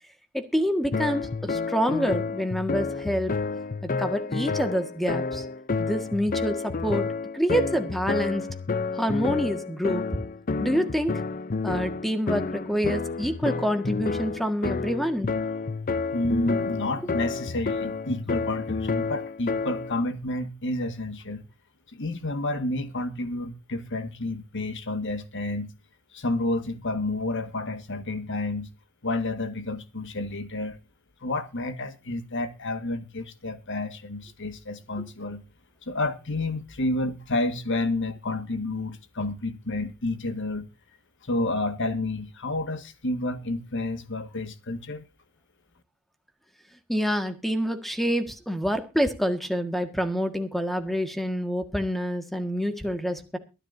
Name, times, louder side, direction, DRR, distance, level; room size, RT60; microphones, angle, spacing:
voice 1, 0.3-3.4 3.8-5.4 5.8-7.1 7.3-8.5 8.9-10.1 10.6-11.2 11.6-15.3 46.9-53.4, equal, ahead, 1.7 m, -27 dB
sound 1, 0.9-20.0, left 4 dB, 40° left, 0.6 m, -30 dB
voice 2, 16.1-21.4 21.9-25.7 26.1-28.7 29.0-30.8 31.2-35.4 35.8-40.7 41.2-45.0, left 2 dB, 55° left, 1.7 m, -30 dB
22.5 x 11.0 x 2.7 m
head